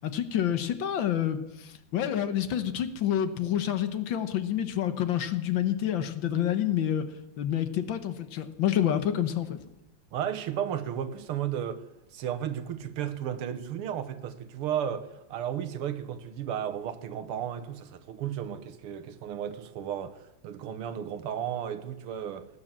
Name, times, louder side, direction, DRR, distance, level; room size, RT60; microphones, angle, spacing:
voice 1, 0.0-7.1 7.4-9.6, left 10 dB, 65° left, 1.7 m, -28 dB
voice 2, 10.1-11.8 12.1-22.5, right 9 dB, 90° right, 1.9 m, -34 dB
18.0 x 9.6 x 7.4 m
omnidirectional pair, 2.4 m